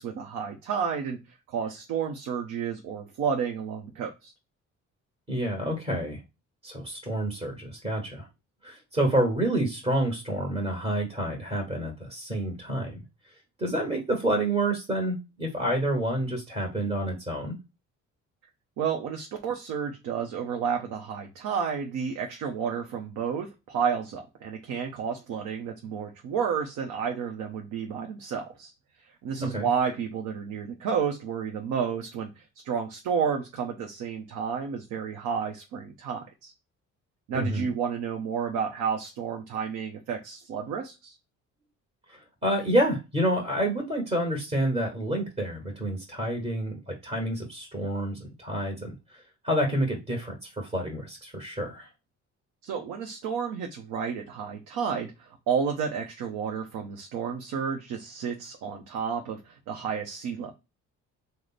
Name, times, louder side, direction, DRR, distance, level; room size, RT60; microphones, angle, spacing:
voice 1, 0.0-4.3 18.8-28.7 29.0-36.5 37.3-41.2 52.6-60.5, right 6 dB, 90° right, 3 dB, 0.6 m, -31 dB
voice 2, 5.3-6.2 6.6-8.3 8.6-13.0 13.6-17.6 29.5-29.7 37.3-37.7 42.1-51.9, right 1 dB, 20° right, 1 dB, 1.1 m, -28 dB
3.2 x 2.0 x 3.8 m, 0.25 s
cardioid pair, 90°, 30 cm